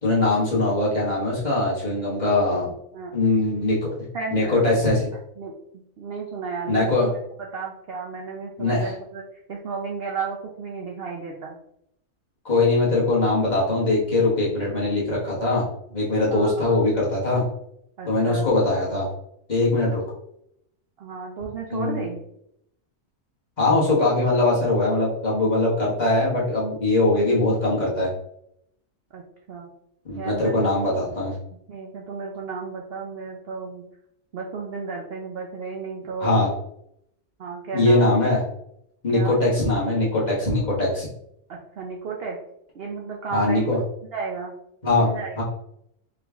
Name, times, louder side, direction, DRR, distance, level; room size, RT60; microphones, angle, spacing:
voice 1, 0.0-2.7 3.1-3.9 4.3-5.1 6.7-7.1 8.6-8.9 12.4-15.6 15.9-17.4 18.1-19.1 19.5-20.0 21.7-22.0 23.6-28.1 30.0-31.3 36.2-36.5 37.7-38.4 39.0-41.1 43.3-43.8 44.8-45.1 45.4-45.5, left 2 dB, 30° left, -6 dB, 1.3 m, -21 dB
voice 2, 4.1-4.6 5.4-9.2 9.5-11.6 16.3-16.7 18.0-18.5 21.0-22.2 29.1-29.2 29.5-29.7 30.2-30.6 31.7-33.8 34.3-36.6 37.4-38.2 39.1-39.4 41.5-42.4 42.7-43.8 44.1-44.6 45.0-45.4, right 4 dB, 65° right, 0 dB, 0.6 m, -33 dB
3.7 x 3.0 x 3.4 m, 0.76 s
omnidirectional pair, 1.6 m